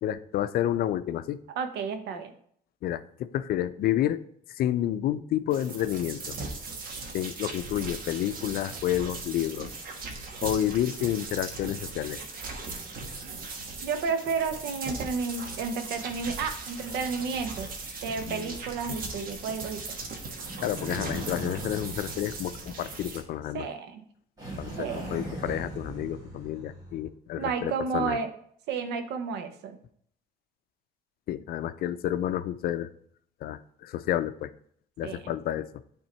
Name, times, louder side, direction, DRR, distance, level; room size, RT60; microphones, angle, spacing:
voice 1, 0.0-1.4 2.8-4.2 4.5-6.4 7.1-9.7 10.4-12.2 18.3-18.6 20.6-23.7 24.6-28.2 31.3-32.9 33.4-34.5 35.0-35.7, left 12 dB, 65° left, 14 dB, 0.5 m, -30 dB
voice 2, 1.6-2.3 13.8-17.7 18.0-20.1 23.5-24.0 24.8-25.1 27.4-28.3 28.7-29.8 35.0-35.3, right 5 dB, 85° right, 8 dB, 0.9 m, -32 dB
sound 1, 5.5-23.2, right 3 dB, 55° right, 1.4 m, -39 dB
sound 2, 20.4-23.5 24.4-27.1, right 1 dB, 20° right, 2.4 m, -39 dB
8.8 x 3.6 x 4.3 m, 0.64 s
cardioid pair, 110°, 17 cm